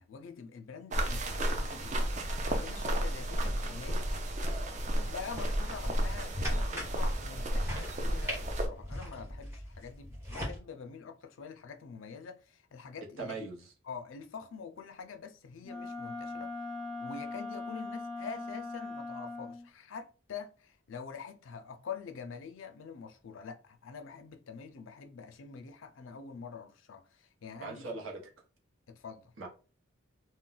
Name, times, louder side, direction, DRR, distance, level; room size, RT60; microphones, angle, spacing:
voice 1, 0.0-4.2 5.1-13.5 13.8-28.0 28.9-29.3, left 5 dB, 70° left, 0.4 m, -46 dB
sound 1, 0.9-8.7, right 1 dB, 35° right, 0.4 m, -32 dB
sound 2, 5.4-10.6, equal, 10° right, 1.2 m, -41 dB
voice 2, 13.2-13.7 27.6-28.2 29.4-29.5, right 4 dB, 75° right, 0.9 m, -40 dB
Wind instrument woodwind instrument, 15.6-19.7, left 3 dB, 5° left, 0.7 m, -40 dB
2.3 x 2.1 x 3.8 m
head